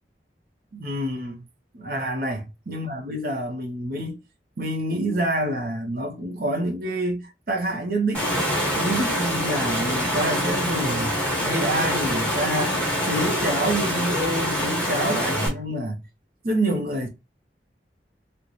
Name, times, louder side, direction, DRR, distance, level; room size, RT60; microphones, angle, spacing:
voice 1, 0.7-1.4 1.7-4.2 4.6-8.5 8.7-11.1 11.4-16.0 16.4-17.1, right 1 dB, 55° right, 0.7 m, -27 dB
Water, 8.1-15.5, equal, 5° left, 1.5 m, -25 dB
3.9 x 2.2 x 3.0 m
head